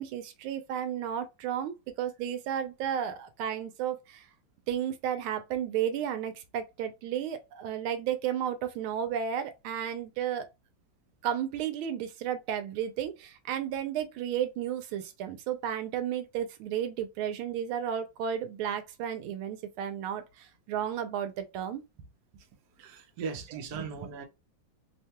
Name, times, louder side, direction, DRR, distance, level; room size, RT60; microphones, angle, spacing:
voice 1, 0.0-4.3 4.7-10.5 11.2-21.8 23.7-23.9, right 9 dB, 85° right, 1.4 m, -33 dB
voice 2, 22.8-24.3, right 5 dB, 65° right, 1.0 m, -38 dB
3.4 x 2.2 x 2.8 m
omnidirectional pair, 2.3 m